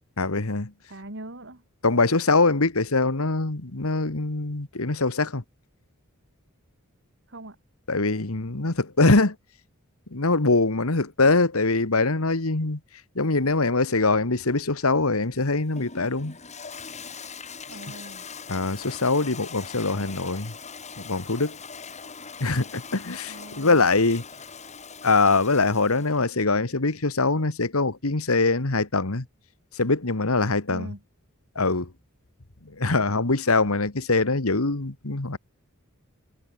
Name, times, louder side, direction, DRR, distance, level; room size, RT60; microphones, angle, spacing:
voice 1, 0.2-0.7 1.8-5.4 7.9-9.4 10.1-12.8 13.2-16.4 18.5-20.5 21.0-21.6 22.4-24.2 25.0-29.3 29.7-30.9 31.6-31.9 32.7-35.4, left 3 dB, 70° left, 1.8 m, -23 dB
voice 2, 0.9-1.6 7.3-7.6 17.7-18.3 23.3-23.9 30.7-31.0, right 1 dB, 55° right, 5.5 m, -41 dB
Toilet flush, 15.2-26.3, left 5 dB, 30° left, 4.1 m, -42 dB
head